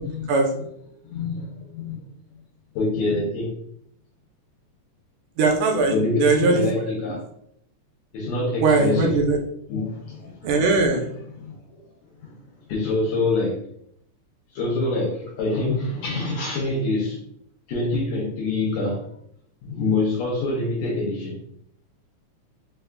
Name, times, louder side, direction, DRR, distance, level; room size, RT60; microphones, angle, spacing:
voice 1, 1.0-2.0 2.7-3.5 5.9-7.2 8.1-9.2 9.7-10.6 11.3-11.8 12.2-12.3 12.7-13.6 14.5-17.2 17.7-19.1 19.6-21.4, left 2 dB, 75° left, 1.8 m, -25 dB
voice 2, 5.4-6.0 6.2-6.9 8.6-9.4 10.4-11.1, right 3 dB, 85° right, 2.2 m, -20 dB
5.5 x 2.3 x 2.2 m
omnidirectional pair, 3.5 m